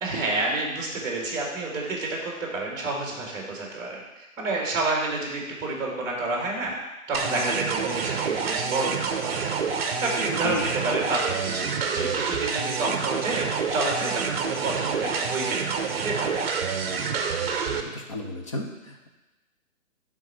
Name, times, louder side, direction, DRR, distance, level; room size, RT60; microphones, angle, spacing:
voice 1, 0.0-6.7 7.1-13.4 13.7-16.5, right 2 dB, 10° right, -1 dB, 1.3 m, -29 dB
sound 1, 7.1-17.8, right 6 dB, 45° right, 0.7 m, -28 dB
voice 2, 17.7-19.1, left 2 dB, 25° left, 1 dB, 0.5 m, -34 dB
7.4 x 3.7 x 5.5 m, 1.1 s
hypercardioid pair, 150°, 42 cm